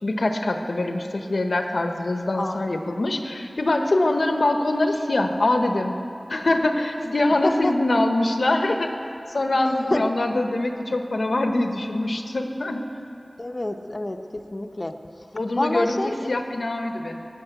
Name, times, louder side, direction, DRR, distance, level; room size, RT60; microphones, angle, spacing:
voice 1, 0.0-5.9 6.3-8.9 9.3-12.8 15.3-17.2, left 2 dB, 80° left, 5 dB, 0.9 m, -23 dB
voice 2, 7.4-7.7 9.9-10.1 13.4-15.0 15.5-16.4, left 2 dB, 45° left, 6 dB, 0.9 m, -27 dB
17.5 x 9.0 x 8.1 m, 2.8 s
wide cardioid pair, 45°, 0 cm